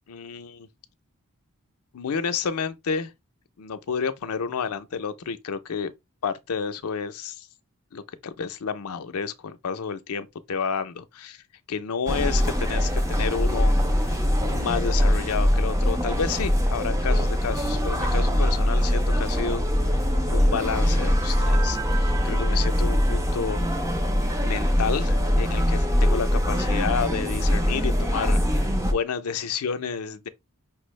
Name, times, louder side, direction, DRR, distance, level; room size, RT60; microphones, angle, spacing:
voice 1, 0.1-0.7 1.9-3.1 3.6-5.9 6.2-7.5 7.9-11.4 11.7-14.2 14.5-20.0 20.3-24.0 24.4-30.3, left 6 dB, 80° left, 0.5 m, -30 dB
sound 1, 12.1-28.9, equal, 15° right, 0.6 m, -22 dB
5.7 x 2.0 x 3.1 m
head